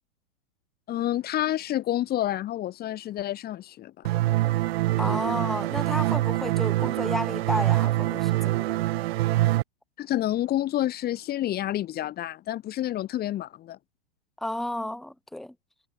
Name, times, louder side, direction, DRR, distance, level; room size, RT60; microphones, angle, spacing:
voice 1, 0.9-4.1 5.0-5.2 10.0-13.8, left 13 dB, 25° left, 2.9 m, -29 dB
sound 1, 4.1-9.6, right 17 dB, 55° right, 1.2 m, -25 dB
voice 2, 5.0-8.7 14.4-15.5, left 1 dB, ahead, 1.7 m, -32 dB
hypercardioid pair, 135°, 36 cm